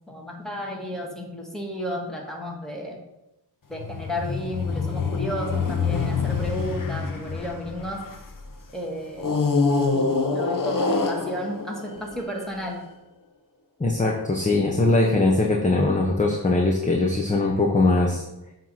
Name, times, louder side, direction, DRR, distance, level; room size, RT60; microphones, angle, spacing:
voice 1, 0.1-3.0 3.7-8.0 8.7-9.3 9.9-12.8, equal, ahead, -1 dB, 1.5 m, -32 dB
sound 1, 3.7-8.4 9.2-12.6, left 4 dB, 55° left, 0.8 m, -26 dB
voice 2, 13.8-18.2, left 2 dB, 20° left, -1 dB, 0.8 m, -21 dB
7.3 x 3.0 x 5.5 m, 0.91 s
wide cardioid pair, 80°, 40 cm